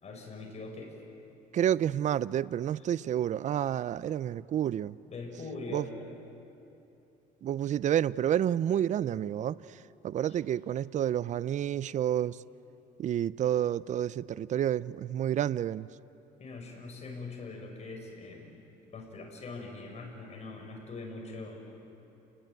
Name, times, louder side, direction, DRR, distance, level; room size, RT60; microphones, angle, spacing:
voice 1, 0.0-0.9 5.1-6.1 10.2-10.4 16.4-18.6 18.9-21.7, left 3 dB, 40° left, 6.0 m, -42 dB
voice 2, 1.5-5.0 5.7-5.8 7.4-9.6 10.0-12.4 13.0-15.9, right 10 dB, 45° right, 0.5 m, -29 dB
29.5 x 20.0 x 9.1 m
cardioid pair, 110°, 17 cm